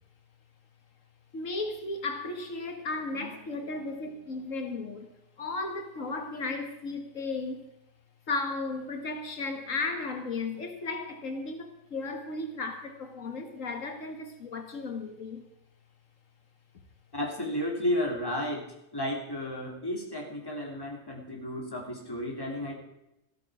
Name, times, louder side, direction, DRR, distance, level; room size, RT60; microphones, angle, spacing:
voice 1, 1.3-5.1 5.4-7.7 8.3-15.4, left 3 dB, 85° left, 5 dB, 2.0 m, -35 dB
voice 2, 17.1-18.7 18.9-22.8, left 1 dB, 20° left, -1 dB, 3.0 m, -32 dB
14.0 x 13.0 x 4.8 m, 0.86 s
omnidirectional pair, 1.3 m